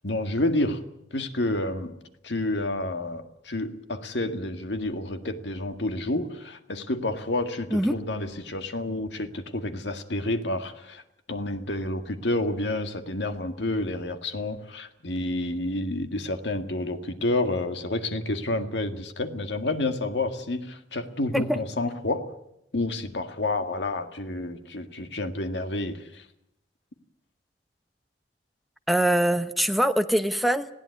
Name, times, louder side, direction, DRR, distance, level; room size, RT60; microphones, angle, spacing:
voice 1, 0.0-0.8 1.1-2.0 2.2-11.0 11.3-22.3 22.7-26.3, left 2 dB, 90° left, 8 dB, 1.9 m, -29 dB
voice 2, 28.9-30.7, right 1 dB, ahead, 9 dB, 0.8 m, -23 dB
20.0 x 16.5 x 9.6 m, 0.80 s
head